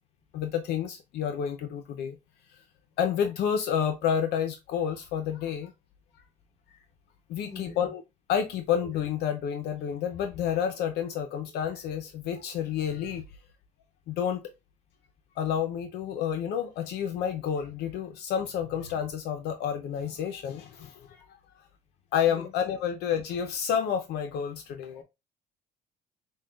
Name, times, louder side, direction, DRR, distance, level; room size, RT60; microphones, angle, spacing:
voice 1, 0.3-2.2 3.0-5.7 7.3-8.0 8.3-13.2 14.1-14.5 15.4-21.3 22.1-25.0, left 8 dB, 80° left, 0.5 m, -29 dB
voice 2, 7.4-7.9 22.3-22.5 24.9-25.0, left 5 dB, 40° left, 1.1 m, -44 dB
6.3 x 2.2 x 2.3 m
cardioid pair, 110°, 17 cm